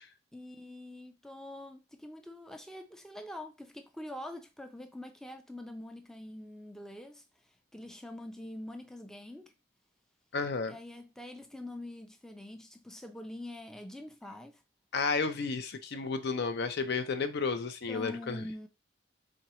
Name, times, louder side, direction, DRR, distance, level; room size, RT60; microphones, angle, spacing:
voice 1, 0.3-9.5 10.7-14.6 17.9-18.7, left 1 dB, 5° left, 0.4 m, -45 dB
voice 2, 10.3-10.8 14.9-18.4, left 4 dB, 55° left, 0.5 m, -32 dB
4.3 x 3.7 x 2.9 m
head